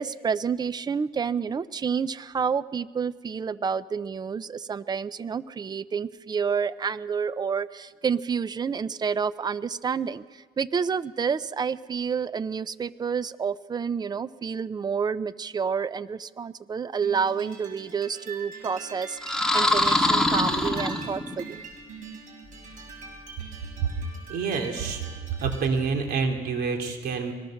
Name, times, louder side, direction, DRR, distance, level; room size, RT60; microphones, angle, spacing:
voice 1, 0.0-10.2 10.6-21.6, right 6 dB, 25° right, 16 dB, 0.6 m, -29 dB
sound 1, 17.0-25.9, right 4 dB, 50° right, 5.8 m, -44 dB
sound 2, 19.2-21.5, left 1 dB, 5° left, 2.4 m, -23 dB
voice 2, 24.3-25.0 25.4-27.3, right 5 dB, 70° right, 3 dB, 3.3 m, -27 dB
24.0 x 18.5 x 6.5 m, 1.5 s
cardioid pair, 110°, 17 cm